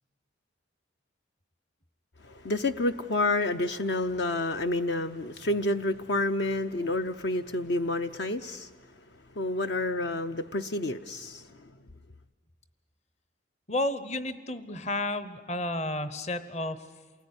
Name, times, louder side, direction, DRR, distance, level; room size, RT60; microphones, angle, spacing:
voice 1, 2.2-8.7 9.4-11.7, left 2 dB, 60° left, 9 dB, 0.7 m, -29 dB
voice 2, 13.7-16.9, left 1 dB, 35° left, 13 dB, 1.0 m, -31 dB
28.5 x 19.5 x 9.7 m, 1.5 s
head